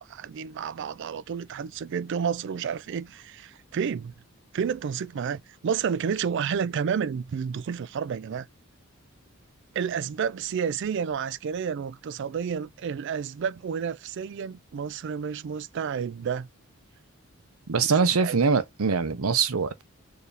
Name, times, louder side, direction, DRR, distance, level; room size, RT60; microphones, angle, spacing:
voice 1, 0.1-4.1 4.5-8.5 9.7-16.5 17.9-18.4, right 7 dB, 55° right, 0.3 m, -30 dB
voice 2, 17.7-19.8, right 5 dB, 85° right, 0.7 m, -23 dB
4.6 x 2.7 x 3.2 m
head